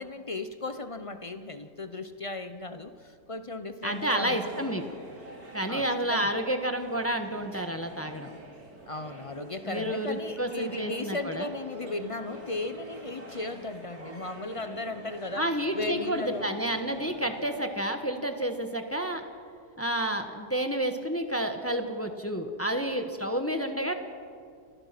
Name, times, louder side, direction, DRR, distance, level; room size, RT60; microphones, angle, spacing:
voice 1, 0.0-4.7 5.7-6.4 7.5-7.7 8.9-15.4 15.7-16.6, left 2 dB, 45° left, 9 dB, 0.4 m, -36 dB
voice 2, 3.8-4.8 5.5-8.3 9.6-11.5 15.4-19.2 19.8-23.9, right 1 dB, 10° left, 5 dB, 1.1 m, -30 dB
sound 1, 3.8-17.6, right 1 dB, 60° right, 3.4 m, -47 dB
29.0 x 16.0 x 5.9 m, 2.2 s
omnidirectional pair, 1.8 m